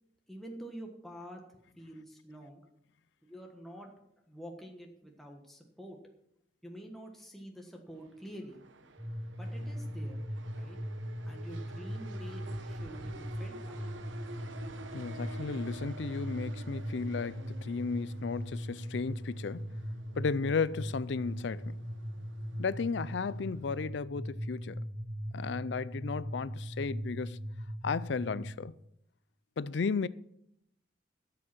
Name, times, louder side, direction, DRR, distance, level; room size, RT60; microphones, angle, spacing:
voice 1, 0.3-2.6 3.2-3.9 4.3-6.0 6.6-8.6 9.4-10.2 10.5-10.8 11.2-13.8, equal, ahead, 1.3 m, -47 dB
sound 1, 7.9-23.8, right 2 dB, 85° right, 1.1 m, -51 dB
sound 2, 9.0-28.5, equal, 20° right, 6.1 m, -40 dB
voice 2, 14.9-19.7 20.2-21.8 22.6-24.8 25.3-27.4 27.8-28.7 29.6-30.1, left 5 dB, 65° left, 0.4 m, -34 dB
13.5 x 7.7 x 5.9 m
head